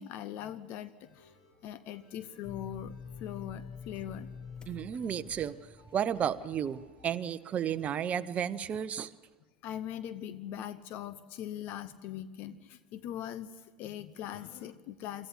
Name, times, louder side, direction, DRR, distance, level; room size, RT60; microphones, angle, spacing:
voice 1, 0.0-1.3 1.6-4.3 9.6-15.3, left 10 dB, 50° left, 14 dB, 0.9 m, -41 dB
sound 1, 1.0-7.1, left 2 dB, 75° left, 6.7 m, -63 dB
sound 2, 2.4-7.1, left 5 dB, 20° left, 1.1 m, -47 dB
voice 2, 4.7-5.6 5.9-9.1, right 9 dB, 35° right, 13 dB, 0.8 m, -32 dB
25.5 x 14.0 x 8.0 m, 1.3 s
figure-of-eight pair, 75°, 4 cm